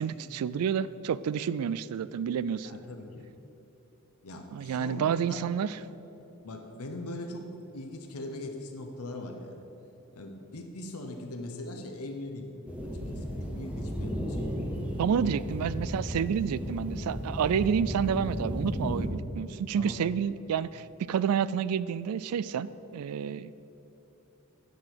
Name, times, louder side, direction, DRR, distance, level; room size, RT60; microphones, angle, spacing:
voice 1, 0.0-2.7 4.5-5.8 15.0-23.5, right 7 dB, 85° right, 17 dB, 0.3 m, -29 dB
voice 2, 2.5-3.2 4.2-5.4 6.4-9.6 10.1-12.5 13.1-14.5 14.9-15.3 19.0-19.2 19.7-20.0, left 1 dB, 85° left, 3 dB, 0.9 m, -41 dB
sound 1, 12.7-19.1, equal, 5° right, 0.9 m, -34 dB
9.3 x 5.0 x 7.6 m, 3.0 s
head